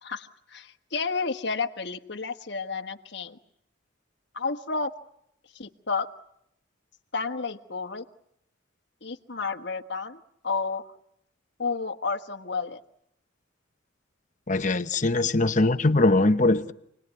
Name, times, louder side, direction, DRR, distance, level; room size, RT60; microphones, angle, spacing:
voice 1, 0.0-3.4 4.3-4.9 5.5-6.1 7.1-8.0 9.0-10.8 11.6-12.8, left 4 dB, 60° left, 1.5 m, -31 dB
voice 2, 14.5-16.7, left 2 dB, 40° left, 1.0 m, -21 dB
29.0 x 20.0 x 9.6 m
head